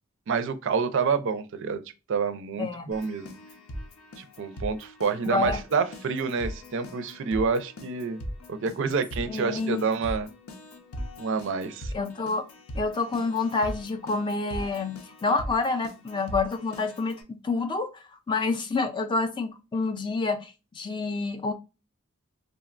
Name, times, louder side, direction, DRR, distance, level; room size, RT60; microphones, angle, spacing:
voice 1, 0.3-1.8 2.1-3.3 4.2-8.2 8.5-10.3 11.2-11.9, right 5 dB, 60° right, 0.4 m, -28 dB
voice 2, 2.6-2.9 5.3-5.6 9.3-9.9 11.9-12.5 12.8-21.5, left 3 dB, 20° left, 0.3 m, -28 dB
Keyboard (musical), 2.9-17.2, equal, 85° left, 0.7 m, -40 dB
3.6 x 2.1 x 2.4 m
head